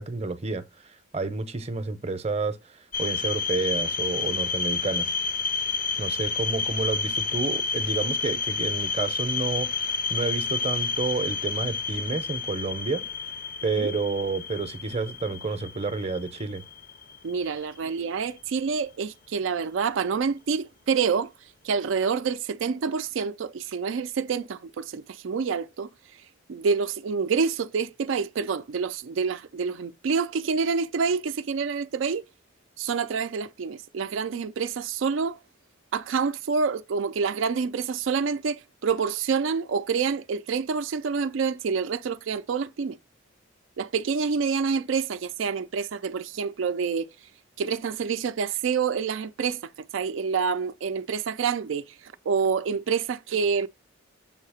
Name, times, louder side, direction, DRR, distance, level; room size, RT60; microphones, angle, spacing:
voice 1, 0.0-5.1 6.0-13.3 13.6-16.6, right 3 dB, 30° right, 0.7 m, -30 dB
sound 1, 2.9-17.8, left 4 dB, 45° left, 0.6 m, -30 dB
voice 2, 17.2-21.3 21.6-25.9 26.5-32.2 32.8-35.4 35.9-43.0 43.8-47.1 47.6-53.7, right 5 dB, 75° right, 0.4 m, -27 dB
7.2 x 2.8 x 4.8 m
head